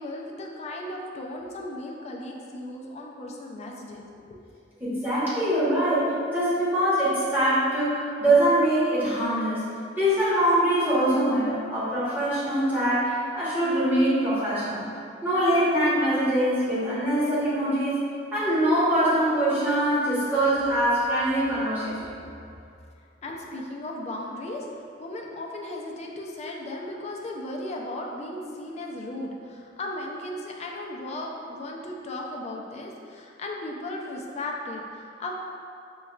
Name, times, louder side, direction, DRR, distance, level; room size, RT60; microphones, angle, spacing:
voice 1, 0.0-4.1 23.2-24.7 25.0-35.3, left 1 dB, 35° left, 0 dB, 0.4 m, -36 dB
voice 2, 4.8-9.6 10.0-14.9 15.2-18.0 18.3-22.1, right 1 dB, 10° right, -11 dB, 1.1 m, -23 dB
5.3 x 2.3 x 2.2 m, 2.5 s
head